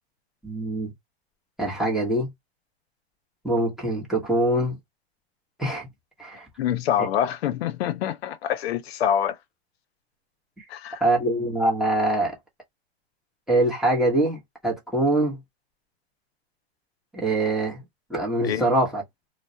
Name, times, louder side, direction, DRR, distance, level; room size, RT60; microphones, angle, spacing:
voice 1, 0.4-0.9 1.6-2.3 3.4-4.8 5.6-5.9 6.2-6.5 7.0-7.1 10.6-10.7 11.0-12.4 13.5-15.4 17.1-17.8 18.1-19.0, right 1 dB, ahead, 0.8 m, -24 dB
voice 2, 6.6-9.4 10.7-11.0 18.4-18.7, left 10 dB, 70° left, 0.6 m, -26 dB
2.3 x 2.1 x 2.6 m
hypercardioid pair, 130°, 32 cm